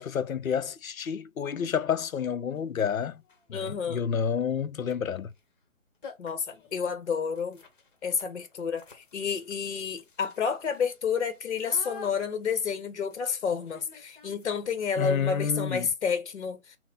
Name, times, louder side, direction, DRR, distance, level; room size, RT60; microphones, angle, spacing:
voice 1, 0.0-3.2 3.5-5.3 15.0-15.9, left 7 dB, 85° left, 0.6 m, -29 dB
sound 1, 2.5-2.6 3.2-3.6 5.3-5.4 5.7-5.8 6.0-14.9, left 3 dB, 40° left, 1.1 m, -51 dB
voice 2, 3.5-4.0 6.2-7.6 8.0-16.6, left 6 dB, 55° left, 0.9 m, -30 dB
4.0 x 2.1 x 4.0 m
figure-of-eight pair, 145°, 40 cm